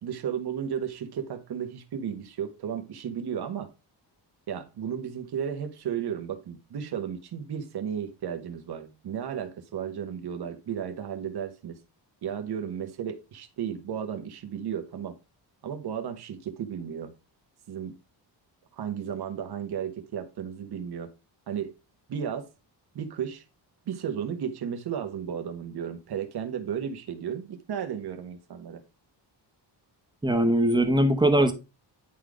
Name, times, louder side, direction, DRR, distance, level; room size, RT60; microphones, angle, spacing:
voice 1, 0.0-3.7 4.5-11.8 12.2-15.1 15.6-17.1 17.7-17.9 18.7-21.1 21.5-21.7 22.1-22.5 22.9-23.4 23.9-28.8, right 8 dB, 65° right, 1.5 m, -34 dB
voice 2, 30.2-31.5, right 1 dB, 10° right, 1.0 m, -21 dB
10.5 x 3.9 x 4.9 m
wide cardioid pair, 170°, 42 cm